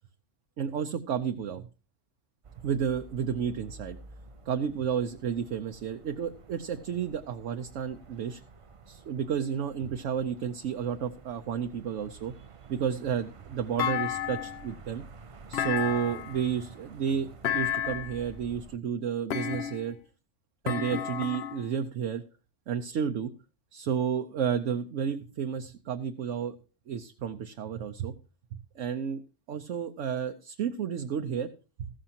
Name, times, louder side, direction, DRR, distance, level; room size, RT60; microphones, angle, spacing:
voice 1, 0.6-1.7 2.6-4.0 4.5-8.4 8.9-12.3 12.7-15.0 15.5-17.3 17.5-20.0 20.6-22.2 22.7-23.3 23.7-26.6 26.9-28.1 28.7-29.2 29.5-31.5, right 7 dB, 75° right, 6 dB, 1.1 m, -31 dB
sound 1, 2.4-18.8, right 4 dB, 40° right, 0.4 m, -50 dB
Thump thud, 13.8-14.7 15.5-16.4 17.4-18.2 19.3-20.0 20.7-21.7, left 10 dB, 60° left, 1.0 m, -32 dB
15.0 x 13.0 x 2.9 m, 0.33 s
omnidirectional pair, 1.3 m